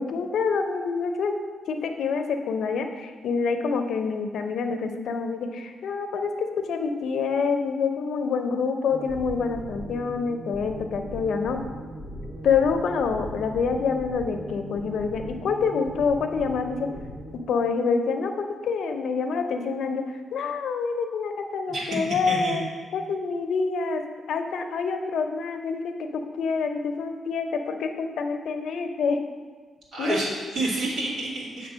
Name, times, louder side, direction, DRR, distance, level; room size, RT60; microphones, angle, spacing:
voice 1, 0.0-1.3 1.7-11.6 12.4-16.9 17.5-22.6 22.9-24.0 24.3-29.2 30.0-30.2, left 5 dB, 75° left, 6 dB, 0.6 m, -27 dB
sound 1, 8.9-17.4, equal, 55° right, 1.4 m, -39 dB
voice 2, 21.7-22.6 29.9-31.7, right 2 dB, 75° right, -5 dB, 2.2 m, -29 dB
7.5 x 3.3 x 6.1 m, 1.5 s
cardioid pair, 115°, 0 cm